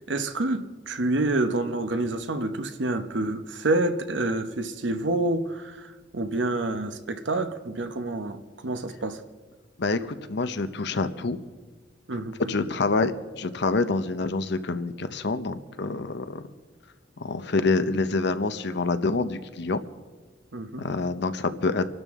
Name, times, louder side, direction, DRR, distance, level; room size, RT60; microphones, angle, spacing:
voice 1, 0.0-9.2 12.1-12.3 20.5-20.9, right 2 dB, 70° right, 0.9 m, -28 dB
voice 2, 9.8-11.4 12.5-16.4 17.2-19.8 20.8-21.9, left 3 dB, 65° left, 0.8 m, -27 dB
25.5 x 12.5 x 3.6 m
head